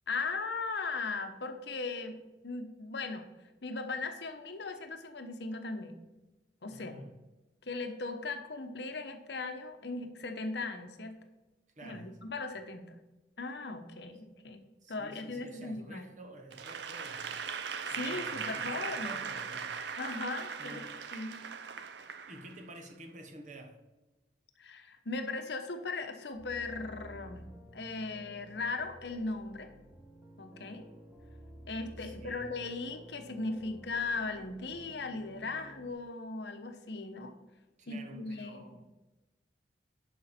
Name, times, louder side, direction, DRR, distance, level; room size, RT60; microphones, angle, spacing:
voice 1, 0.1-2.2 2.4-3.3 3.6-6.0 6.6-7.0 7.6-11.2 11.8-13.0 13.4-14.6 14.9-16.0 17.9-19.2 20.0-20.8 21.1-21.4 24.6-27.4 27.7-29.7 30.4-30.9 31.7-37.3 37.9-38.6, left 3 dB, 65° left, 1.0 m, -38 dB
voice 2, 6.7-7.1 11.7-12.2 14.8-17.3 17.9-19.8 20.3-20.9 22.3-23.8 32.0-32.5 37.8-38.8, right 1 dB, 40° right, 1.1 m, -50 dB
Applause / Crowd, 16.5-22.8, right 6 dB, 65° right, 0.6 m, -39 dB
sound 1, 26.3-35.9, equal, 5° right, 0.8 m, -53 dB
11.0 x 5.2 x 4.3 m
head